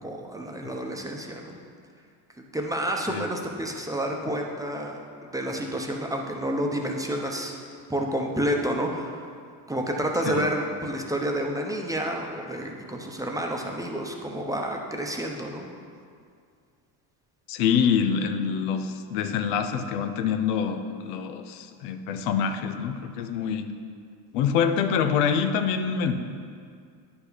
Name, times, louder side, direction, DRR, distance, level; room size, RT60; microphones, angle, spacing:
voice 1, 0.0-1.6 2.5-5.0 5.3-7.6 7.9-9.3 9.7-15.8, right 1 dB, 5° right, 1 dB, 0.8 m, -29 dB
voice 2, 17.5-23.7 24.3-26.1, left 7 dB, 90° left, 8 dB, 0.7 m, -25 dB
9.7 x 5.8 x 4.0 m, 2.2 s
supercardioid pair, 105°, 47 cm